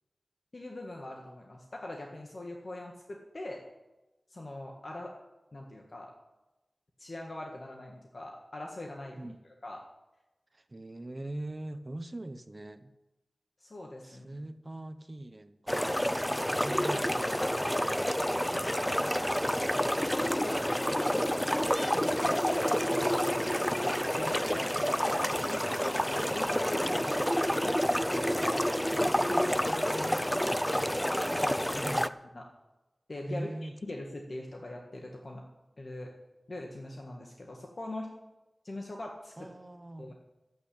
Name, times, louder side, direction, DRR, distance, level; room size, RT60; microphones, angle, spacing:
voice 1, 0.5-3.6 4.3-5.1 5.5-6.1 7.0-9.3 9.6-9.8 13.6-14.3 18.4-19.2 19.9-24.8 25.5-27.3 27.6-28.5 29.3-30.5 30.8-32.0 32.3-32.4 33.1-35.4 35.8-36.1 36.5-38.1 38.6-39.5 40.0-40.1, left 1 dB, 55° left, 0 dB, 1.8 m, -42 dB
voice 2, 10.5-12.9 14.0-15.9 16.5-17.5 31.8-32.1 33.3-33.8 39.4-40.1, right 1 dB, 30° right, 10 dB, 1.0 m, -41 dB
sound 1, 15.7-32.1, equal, 5° left, 0.5 m, -29 dB
12.5 x 8.2 x 8.7 m, 1.0 s
wide cardioid pair, 70°, 0 cm